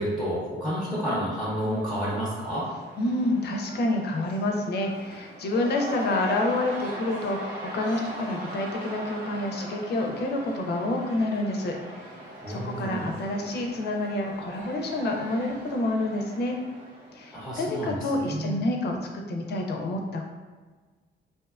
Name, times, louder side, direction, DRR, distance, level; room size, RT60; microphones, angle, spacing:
voice 1, 0.0-2.7 12.4-13.1 17.3-18.5, equal, ahead, -6 dB, 0.6 m, -30 dB
Cheering / Crowd, 1.3-18.2, equal, 45° right, 0.7 m, -40 dB
voice 2, 3.0-12.2 12.5-16.6 17.1-20.3, left 1 dB, 55° left, 2 dB, 0.5 m, -28 dB
2.6 x 2.2 x 2.3 m, 1.4 s
cardioid pair, 90°, 20 cm